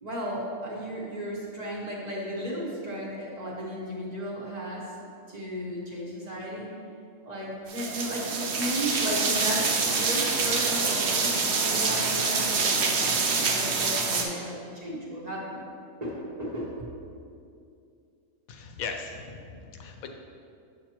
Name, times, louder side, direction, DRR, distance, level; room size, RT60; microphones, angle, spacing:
voice 1, 0.0-4.8 5.3-6.7 7.2-12.9 13.2-15.6 16.0-16.9, equal, 30° right, -6 dB, 1.1 m, -34 dB
sound 1, 7.7-14.2, right 4 dB, 55° right, 0.9 m, -26 dB
voice 2, 18.5-20.1, left 5 dB, 75° left, 4 dB, 1.1 m, -38 dB
7.6 x 6.4 x 2.9 m, 2.5 s
omnidirectional pair, 1.5 m